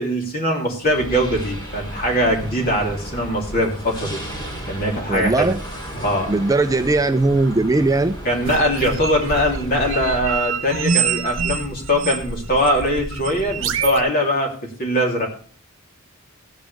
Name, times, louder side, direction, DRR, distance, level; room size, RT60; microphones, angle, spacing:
voice 1, 0.0-4.2 4.7-5.5 5.9-6.3 8.2-14.5 14.8-15.3, equal, 45° left, 0 dB, 3.1 m, -21 dB
sound 1, 0.8-10.2, right 1 dB, 25° left, 4.1 m, -34 dB
voice 2, 5.1-5.6 6.3-8.2, right 2 dB, 15° right, 9 dB, 0.4 m, -18 dB
sound 2, 8.4-14.0, right 5 dB, 70° right, 1.2 m, -25 dB
15.0 x 9.2 x 3.4 m, 0.43 s
head